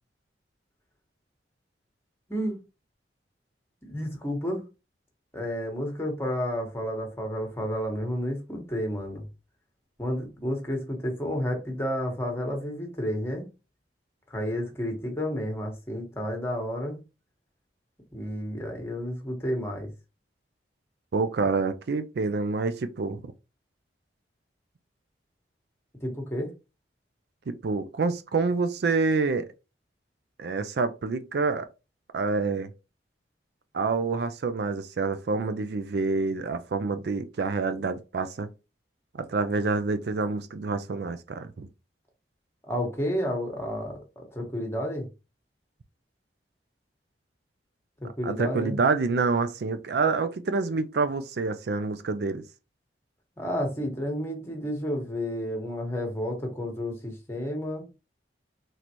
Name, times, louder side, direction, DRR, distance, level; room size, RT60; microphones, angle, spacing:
voice 1, 3.8-4.6 5.3-9.2 10.0-13.5 14.3-17.0 18.1-19.9 26.0-26.5 42.6-45.1 48.0-48.8 53.4-57.8, equal, 15° left, 1.3 m, -31 dB
voice 2, 21.1-23.2 27.5-29.5 30.4-31.7 32.1-32.7 33.7-38.5 39.2-41.7 48.2-52.4, right 4 dB, 65° right, 0.4 m, -27 dB
4.1 x 3.2 x 3.0 m
head